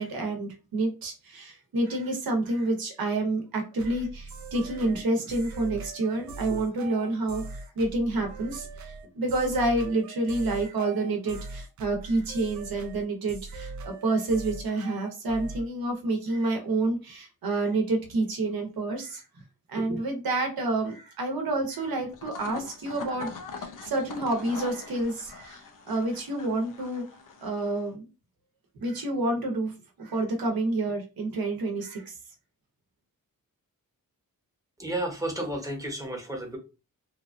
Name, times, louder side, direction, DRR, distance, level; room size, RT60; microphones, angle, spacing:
voice 1, 0.0-19.2 19.7-27.0 27.4-28.1 28.8-32.2, right 2 dB, 80° right, 3 dB, 0.8 m, -29 dB
sound 1, 3.8-15.7, right 3 dB, 55° right, 0.5 m, -41 dB
sound 2, 22.1-27.9, left 4 dB, 60° left, 0.5 m, -42 dB
voice 2, 34.8-36.6, right 1 dB, 10° right, 1 dB, 0.8 m, -32 dB
3.0 x 2.2 x 2.4 m, 0.31 s
wide cardioid pair, 125°, 35 cm